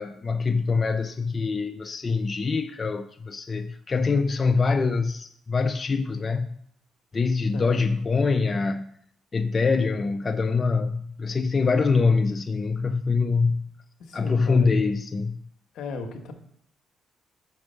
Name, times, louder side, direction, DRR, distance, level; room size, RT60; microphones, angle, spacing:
voice 1, 0.0-6.6 7.1-8.9 9.3-13.7 14.1-15.4, left 4 dB, 35° left, 0.3 m, -24 dB
voice 2, 14.0-14.7 15.7-16.3, left 3 dB, 75° left, 0.9 m, -35 dB
6.1 x 4.7 x 5.3 m
cardioid pair, 90°, 0 cm